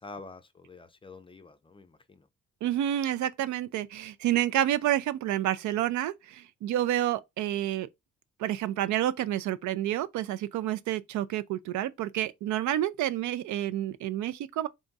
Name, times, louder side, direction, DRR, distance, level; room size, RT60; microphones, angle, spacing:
voice 1, 0.0-2.3, left 3 dB, 20° left, 0.4 m, -47 dB
voice 2, 2.6-7.9 8.4-14.7, right 12 dB, 75° right, 0.4 m, -29 dB
3.7 x 2.3 x 3.9 m
cardioid pair, 90°, 30 cm